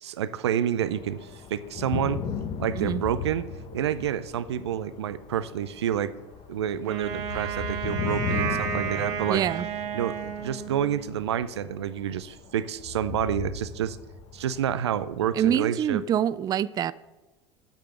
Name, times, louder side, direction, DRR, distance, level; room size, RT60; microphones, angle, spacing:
voice 1, 0.0-2.2 2.6-3.5 3.7-6.1 6.5-9.4 9.9-14.0 14.3-16.0, right 9 dB, 75° right, 15 dB, 0.5 m, -29 dB
sound 1, 0.8-15.6, left 5 dB, 40° left, 0.9 m, -37 dB
Wind instrument woodwind instrument, 6.8-11.1, right 7 dB, 55° right, 1.6 m, -32 dB
voice 2, 9.3-9.7 15.3-16.9, right 10 dB, 25° right, 18 dB, 0.3 m, -25 dB
8.0 x 6.7 x 6.9 m, 1.1 s
figure-of-eight pair, 75°, 14 cm